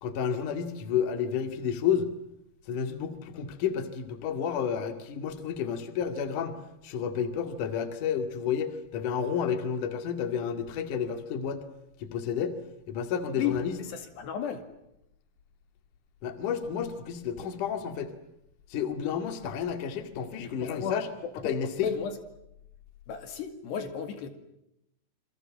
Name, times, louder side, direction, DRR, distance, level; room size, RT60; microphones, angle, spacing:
voice 1, 0.0-2.1 2.7-6.5 6.8-11.6 12.0-12.6 12.9-13.7 16.2-18.1 18.7-21.1 21.4-21.9, left 7 dB, 50° left, 9 dB, 3.3 m, -31 dB
voice 2, 13.3-14.7 20.4-21.0 21.2-22.2 23.1-24.3, left 8 dB, 70° left, 9 dB, 4.2 m, -34 dB
27.5 x 26.0 x 7.5 m, 0.82 s
omnidirectional pair, 5.1 m